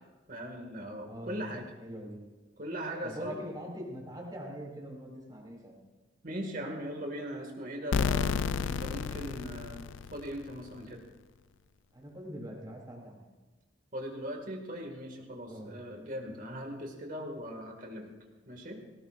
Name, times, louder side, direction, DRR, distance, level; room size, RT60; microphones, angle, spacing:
voice 1, 0.3-1.7 2.6-3.4 6.2-9.8 10.1-11.0 13.9-18.1 18.5-18.8, equal, 45° right, 2 dB, 2.1 m, -39 dB
voice 2, 1.1-1.5 1.8-2.3 3.0-5.8 11.9-13.3 15.4-15.7, equal, 20° right, -2 dB, 3.3 m, -43 dB
sound 1, 7.9-10.6, left 6 dB, 80° left, 0.4 m, -31 dB
19.0 x 17.5 x 2.6 m, 1.3 s
head